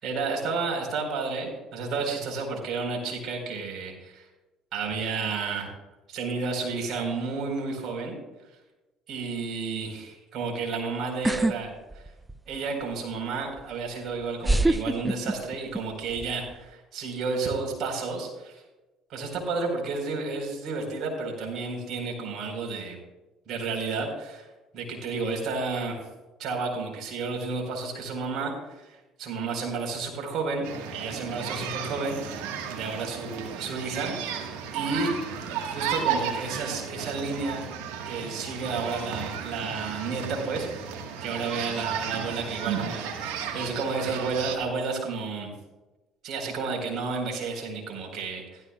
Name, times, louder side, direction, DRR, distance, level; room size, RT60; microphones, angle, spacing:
voice 1, 0.0-4.2 4.7-5.7 6.1-8.2 9.1-12.0 12.5-18.6 19.1-23.0 23.5-24.4 24.7-26.0 26.4-30.7 30.9-32.4 32.7-34.3 34.7-35.1 35.7-37.7 38.0-45.5 46.2-48.6, right 4 dB, 60° right, 0 dB, 4.5 m, -31 dB
sound 1, 11.2-11.6 11.9-12.6 13.6-13.7 14.4-15.8 16.1-16.5, right 2 dB, 10° right, 0.5 m, -24 dB
sound 2, 30.6-44.6, right 7 dB, 85° right, 1.6 m, -34 dB
15.5 x 13.0 x 2.4 m, 1.1 s
supercardioid pair, 80°, 0 cm